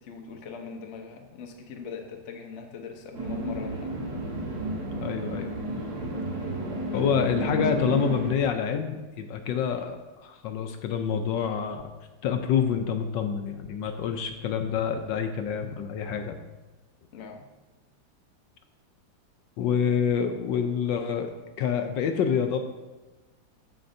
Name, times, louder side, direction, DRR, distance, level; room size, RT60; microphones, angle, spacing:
voice 1, 0.0-4.0 6.9-7.3 17.1-17.5, left 5 dB, 55° left, 3 dB, 0.8 m, -41 dB
sound 1, 3.1-8.3, right 1 dB, 55° right, 1.6 m, -31 dB
voice 2, 5.0-6.1 6.9-11.8 12.2-16.4 19.6-21.3 21.6-22.6, left 7 dB, 75° left, 6 dB, 1.2 m, -27 dB
14.0 x 5.1 x 2.6 m, 1.2 s
omnidirectional pair, 2.1 m